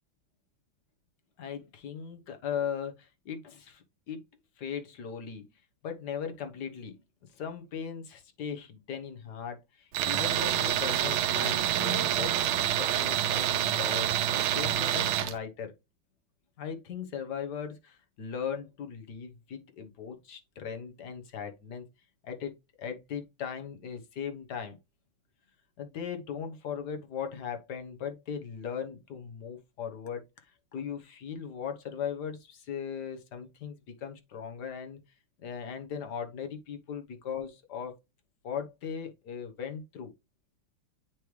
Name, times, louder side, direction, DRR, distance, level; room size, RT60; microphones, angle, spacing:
voice 1, 1.4-4.3 4.6-5.5 5.8-7.0 7.3-15.7 16.6-21.9 22.2-24.8 25.8-35.0 35.4-37.9 38.4-40.1, left 7 dB, 55° left, 1.5 m, -38 dB
Tools, 9.9-15.3, right 11 dB, 85° right, 1.6 m, -27 dB
9.4 x 3.3 x 3.1 m
omnidirectional pair, 2.3 m